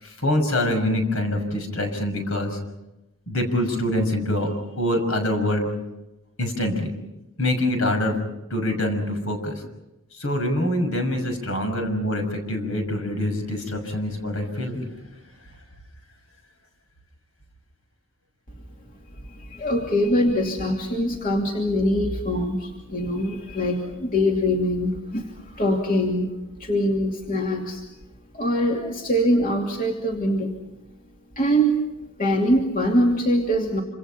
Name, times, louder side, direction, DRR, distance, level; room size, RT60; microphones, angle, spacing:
voice 1, 0.0-2.6 3.3-5.7 6.4-6.9 7.4-8.1 8.5-9.6 10.1-14.9, left 1 dB, 70° left, 5 dB, 6.3 m, -25 dB
voice 2, 19.5-25.2 25.5-26.3 26.6-27.8 28.3-30.5 31.4-31.8 32.2-33.8, equal, 40° left, 0 dB, 2.8 m, -23 dB
27.5 x 27.0 x 5.7 m, 0.95 s
head